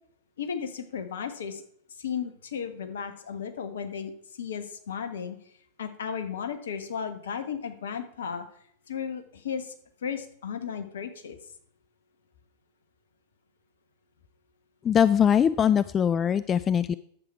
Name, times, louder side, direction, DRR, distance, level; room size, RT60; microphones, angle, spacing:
voice 1, 0.4-1.6 2.0-5.4 5.8-8.4 8.9-9.7 10.0-11.4, left 7 dB, 65° left, 9 dB, 1.3 m, -34 dB
voice 2, 14.8-16.9, left 8 dB, 25° left, 15 dB, 0.3 m, -22 dB
11.0 x 7.6 x 5.7 m, 0.66 s
figure-of-eight pair, 90°, 0 cm